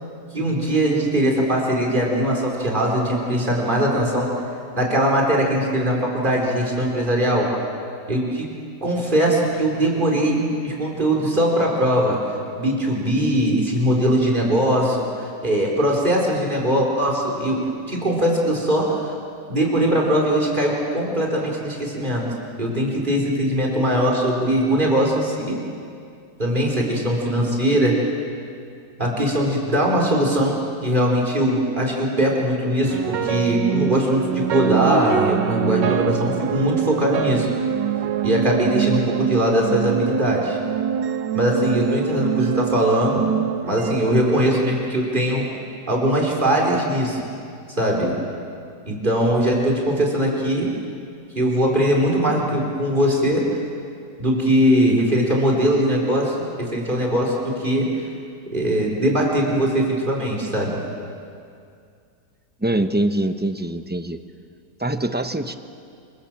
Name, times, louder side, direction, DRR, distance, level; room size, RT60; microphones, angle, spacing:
voice 1, 0.3-4.3 4.7-7.5 8.1-8.5 8.8-12.2 12.6-19.1 19.5-22.2 22.6-25.6 26.4-28.0 29.0-30.6 30.8-37.5 38.2-40.6 41.3-43.3 43.6-45.5 45.9-47.3 47.8-48.1 48.8-50.7 51.3-53.4 54.2-57.9 58.5-60.8, equal, 25° right, -2 dB, 4.7 m, -21 dB
sound 1, 32.8-45.1, right 9 dB, 90° right, 1.6 m, -25 dB
voice 2, 62.6-64.2 64.8-65.5, right 1 dB, 10° right, 8 dB, 0.5 m, -23 dB
27.0 x 26.0 x 7.6 m, 2.3 s
omnidirectional pair, 1.9 m